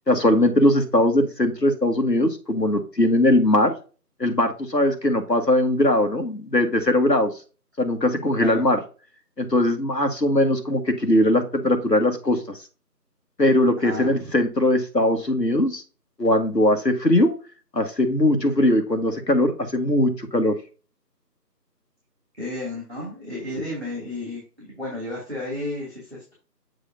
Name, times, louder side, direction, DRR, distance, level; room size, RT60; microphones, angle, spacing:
voice 1, 0.1-3.7 4.2-7.3 7.8-8.8 9.4-12.6 13.4-15.8 16.2-17.3 17.7-20.5, left 1 dB, 80° left, 6 dB, 1.7 m, -20 dB
voice 2, 8.1-8.6 13.8-14.3 22.3-26.3, left 1 dB, 40° right, -7 dB, 2.8 m, -33 dB
9.0 x 4.9 x 2.7 m, 0.35 s
figure-of-eight pair, 180°, 49 cm